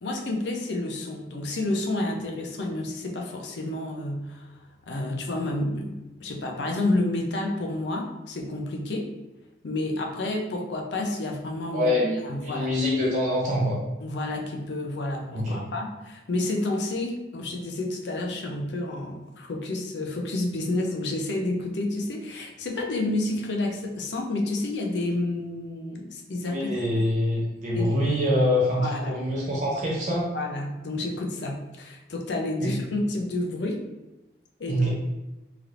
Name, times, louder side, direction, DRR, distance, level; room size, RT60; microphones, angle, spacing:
voice 1, 0.0-4.6 4.9-9.1 9.6-11.9 12.2-12.8 14.0-27.0 27.7-28.0 28.8-29.2 30.3-33.8 34.6-34.9, left 2 dB, 70° left, 1 dB, 0.5 m, -30 dB
voice 2, 11.7-12.2 12.4-13.8 15.3-15.6 26.5-30.3 32.6-32.7 34.7-34.9, left 1 dB, 45° right, -5 dB, 0.6 m, -25 dB
3.2 x 2.9 x 2.4 m, 1.0 s
head